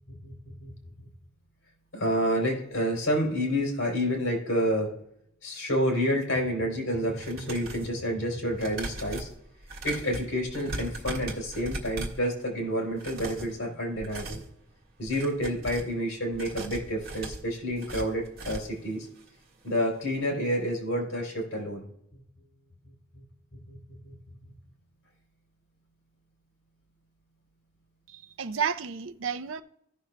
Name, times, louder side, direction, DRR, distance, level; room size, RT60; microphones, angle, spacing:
voice 1, 1.9-4.9 5.4-9.3 9.8-14.4 15.0-19.1 19.6-21.8 23.7-23.8 24.0-24.4, equal, 80° left, 3.2 m, -29 dB
sound 1, 7.1-7.9 8.5-12.3 12.9-13.6 14.0-14.5 15.0-15.9 16.3-18.8 19.2-19.3 19.6-19.7, right 2 dB, 50° right, 1.6 m, -39 dB
voice 2, 28.1-29.6, right 7 dB, 75° right, 0.5 m, -31 dB
16.5 x 6.0 x 2.2 m
head